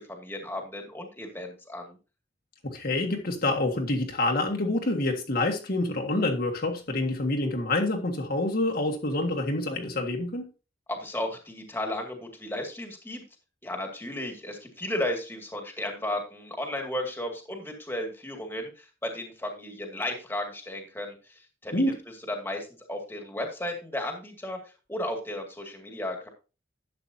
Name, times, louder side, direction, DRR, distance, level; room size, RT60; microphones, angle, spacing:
voice 1, 0.1-2.0 10.9-13.2 13.6-21.9 22.3-26.3, left 1 dB, 10° left, 2.2 m, -34 dB
voice 2, 2.6-10.5 21.7-22.0, left 2 dB, 55° left, 1.7 m, -27 dB
12.0 x 8.1 x 2.8 m
head